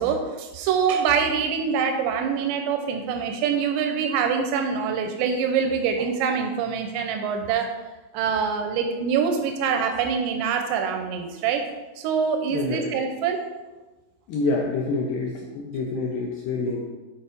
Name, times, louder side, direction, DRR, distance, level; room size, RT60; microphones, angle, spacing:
voice 1, 0.0-7.7 8.1-11.6 12.0-13.4, right 6 dB, 85° right, 4 dB, 2.8 m, -25 dB
voice 2, 12.5-13.0 14.3-16.9, left 3 dB, 85° left, 0 dB, 2.0 m, -27 dB
7.5 x 4.5 x 5.1 m, 1.2 s
omnidirectional pair, 4.9 m